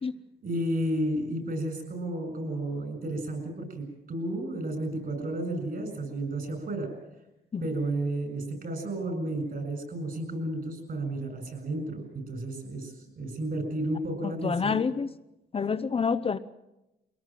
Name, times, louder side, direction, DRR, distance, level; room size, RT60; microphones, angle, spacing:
voice 1, 0.4-6.9 7.6-14.8, right 1 dB, 55° right, 7 dB, 7.7 m, -32 dB
voice 2, 14.2-15.1 15.5-16.4, left 5 dB, 30° left, 11 dB, 0.7 m, -27 dB
23.0 x 18.5 x 7.6 m, 0.95 s
cardioid pair, 105°, 19 cm